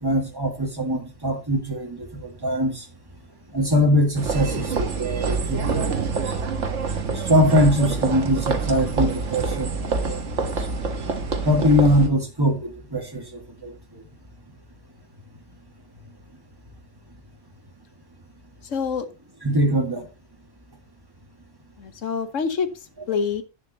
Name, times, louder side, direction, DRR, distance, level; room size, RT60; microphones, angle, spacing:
voice 1, 0.0-2.8 3.5-6.1 7.1-10.3 11.4-13.7 19.4-20.1, equal, 20° right, 1.9 m, -22 dB
sound 1, 4.2-12.1, right 4 dB, 70° right, 1.7 m, -26 dB
voice 2, 18.6-19.1 21.8-23.4, left 6 dB, 80° left, 1.5 m, -27 dB
11.0 x 9.0 x 2.9 m
omnidirectional pair, 1.3 m